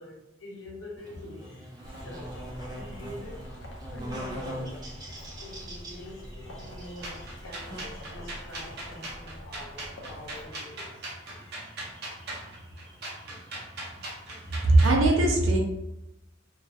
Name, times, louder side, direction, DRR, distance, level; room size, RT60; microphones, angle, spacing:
voice 1, 0.0-3.5 3.9-12.6 13.7-13.9 14.2-14.8, left 1 dB, 90° left, -3 dB, 0.9 m, -46 dB
Buzz, 1.0-14.9, equal, 20° right, 0.5 m, -44 dB
sound 1, 1.8-10.5, equal, 70° left, 0.5 m, -45 dB
sound 2, 7.0-15.0, right 1 dB, 55° right, 0.7 m, -39 dB
voice 2, 14.6-15.6, right 2 dB, 85° right, 0 dB, 0.6 m, -20 dB
2.3 x 2.0 x 2.7 m, 0.88 s
head